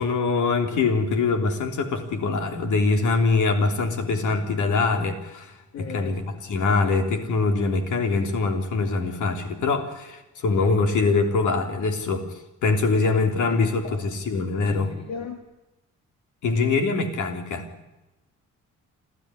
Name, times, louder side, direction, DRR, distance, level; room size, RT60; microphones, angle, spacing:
voice 1, 0.0-14.9 16.4-17.7, left 3 dB, 75° left, 6 dB, 3.4 m, -23 dB
voice 2, 5.7-6.1 13.8-14.0 14.6-15.4, left 6 dB, 60° left, 5 dB, 2.1 m, -35 dB
28.0 x 13.0 x 10.0 m, 0.99 s
cardioid pair, 90°, 30 cm